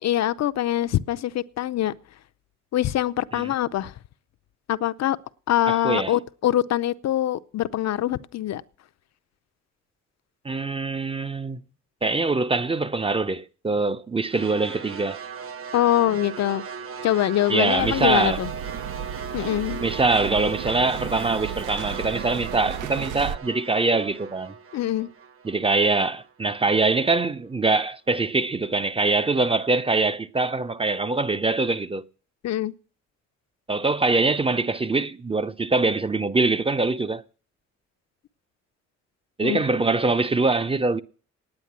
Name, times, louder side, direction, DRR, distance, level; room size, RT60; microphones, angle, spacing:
voice 1, 0.0-1.9 2.7-3.9 4.7-5.2 5.5-8.6 15.7-16.6 17.0-18.5 19.3-19.8 24.7-25.1 32.4-32.7 39.4-39.6, left 12 dB, 60° left, 0.6 m, -24 dB
voice 2, 5.7-6.1 10.4-11.6 12.0-15.2 17.5-18.4 19.4-19.5 19.8-24.5 25.4-32.0 33.7-37.2 39.4-41.0, right 3 dB, 20° right, 0.6 m, -23 dB
sound 1, 14.3-26.6, right 6 dB, 45° right, 1.2 m, -38 dB
sound 2, 17.8-23.4, right 9 dB, 80° right, 0.7 m, -34 dB
9.7 x 9.1 x 7.3 m
cardioid pair, 90°, 30 cm